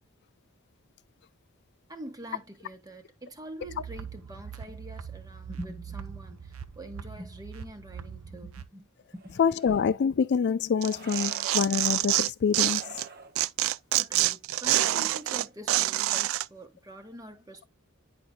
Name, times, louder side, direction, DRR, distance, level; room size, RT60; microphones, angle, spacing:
voice 1, 1.9-8.9 9.1-9.4 14.0-17.6, right 1 dB, 20° right, 1.3 m, -44 dB
sound 1, 3.6-8.6, right 7 dB, 85° right, 0.8 m, -42 dB
sound 2, 9.1-9.9 10.8-11.6 12.5-13.3 14.7-15.5, right 4 dB, 45° right, 1.1 m, -47 dB
voice 2, 9.4-12.8, left 6 dB, 55° left, 0.4 m, -26 dB
Tearing, 10.8-13.1 13.4-16.5, right 15 dB, 65° right, 0.3 m, -26 dB
10.5 x 5.3 x 2.2 m
head